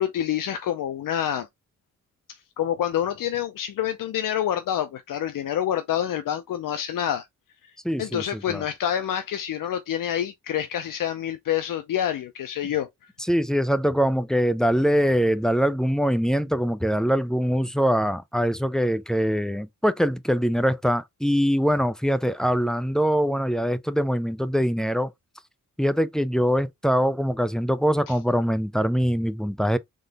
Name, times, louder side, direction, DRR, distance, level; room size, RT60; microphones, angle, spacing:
voice 1, 0.0-1.5 2.3-7.3 7.6-7.7 8.0-12.9 28.1-28.2, left 10 dB, 80° left, 0.6 m, -27 dB
voice 2, 7.8-8.6 13.3-25.1 25.8-29.8, equal, ahead, 0.4 m, -23 dB
3.8 x 3.8 x 3.4 m
wide cardioid pair, 115°, 32 cm